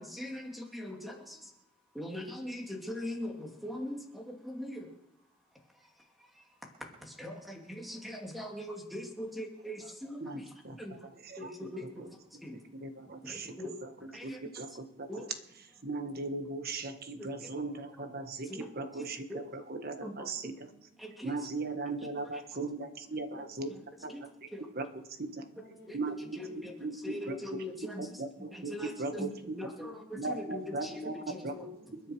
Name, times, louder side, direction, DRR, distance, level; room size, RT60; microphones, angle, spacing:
voice 1, 0.0-1.5 1.9-4.9 5.8-6.5 6.8-11.1 11.4-12.6 13.2-14.4 14.7-15.3 17.2-17.5 18.0-18.1 18.4-19.5 20.0-20.5 21.0-21.4 21.8-21.9 22.3-22.4 23.7-23.8 24.1-24.3 24.5-24.7 25.8-28.2 28.5-31.7, left 1 dB, ahead, 1 dB, 2.6 m, -42 dB
voice 2, 10.2-10.8 11.2-11.5 12.8-13.6 14.2-15.1 15.8-20.7 21.2-23.7 24.0-24.1 24.8-24.9 25.2-25.4 25.9-26.1 26.8-26.9 27.3-27.6 28.0-28.7 29.0-29.3 30.1-31.5 32.0-32.1, right 3 dB, 55° right, 8 dB, 1.4 m, -38 dB
voice 3, 20.3-21.0 21.7-21.8 23.0-23.7 24.0-24.1 25.2-26.7 27.1-27.9 28.8-30.1 30.4-32.1, equal, 35° right, -8 dB, 5.2 m, -58 dB
29.0 x 9.8 x 4.6 m, 0.86 s
head